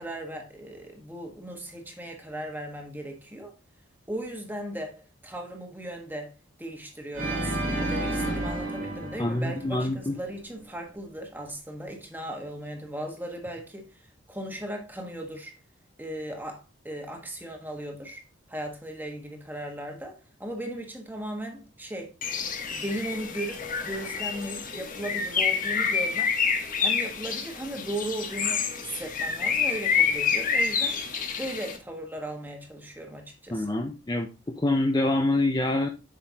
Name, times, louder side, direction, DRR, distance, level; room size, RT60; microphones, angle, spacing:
voice 1, 0.0-3.5 4.1-6.3 6.6-15.5 16.0-22.1 22.7-26.3 26.8-31.0 31.4-33.8, right 1 dB, 10° right, 1.3 m, -37 dB
Organ, 7.1-10.3, right 1 dB, 80° right, 2.9 m, -31 dB
voice 2, 9.2-10.1 33.5-35.9, left 2 dB, 20° left, 0.5 m, -26 dB
Bird, 22.2-31.8, left 6 dB, 40° left, 1.1 m, -28 dB
8.1 x 5.8 x 2.8 m
head